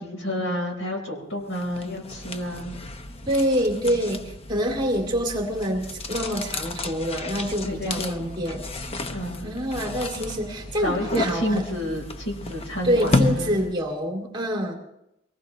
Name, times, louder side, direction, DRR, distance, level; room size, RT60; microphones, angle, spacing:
voice 1, 0.0-2.7 3.8-4.0 7.6-8.3 9.1-9.4 10.8-13.6, equal, 70° left, 1 dB, 4.2 m, -30 dB
sound 1, 1.5-13.9, left 2 dB, 30° left, 0.8 m, -32 dB
voice 2, 3.3-4.2 4.5-8.6 9.4-11.6 12.8-14.8, equal, 25° right, 1 dB, 2.5 m, -26 dB
23.5 x 19.0 x 3.1 m, 0.83 s
head